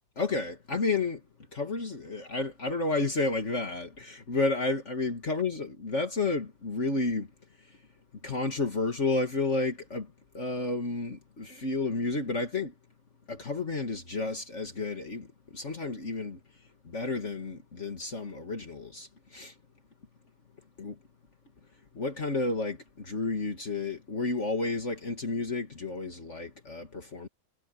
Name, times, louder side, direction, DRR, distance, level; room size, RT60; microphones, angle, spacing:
voice 1, 0.2-1.2 1.5-7.3 7.6-7.8 8.2-12.7 13.3-16.4 16.8-19.5 20.8-21.0 21.9-27.3, left 3 dB, 45° left, 2.4 m, -31 dB
omnidirectional pair, 1.7 m